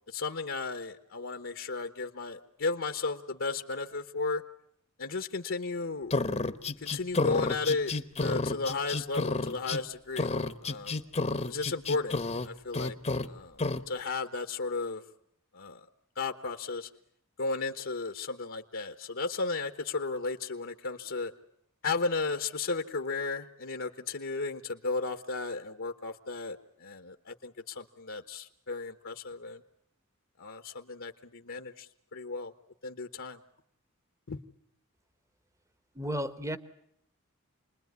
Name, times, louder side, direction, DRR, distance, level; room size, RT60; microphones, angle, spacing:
voice 1, 0.1-4.4 5.0-6.1 6.8-7.9 8.2-10.3 10.6-11.0 11.5-12.2 12.4-13.0 13.2-15.0 15.5-15.8 16.2-16.9 17.4-21.3 21.8-29.6 30.4-32.5 32.8-33.4 34.3-34.4, left 3 dB, 65° left, 7 dB, 1.2 m, -34 dB
sound 1, 6.1-9.8 10.2-12.5 12.7-13.3 13.6-13.8, left 3 dB, 30° left, 1.0 m, -30 dB
voice 2, 35.9-36.6, equal, 15° right, 13 dB, 1.1 m, -33 dB
29.0 x 21.0 x 9.5 m, 0.76 s
head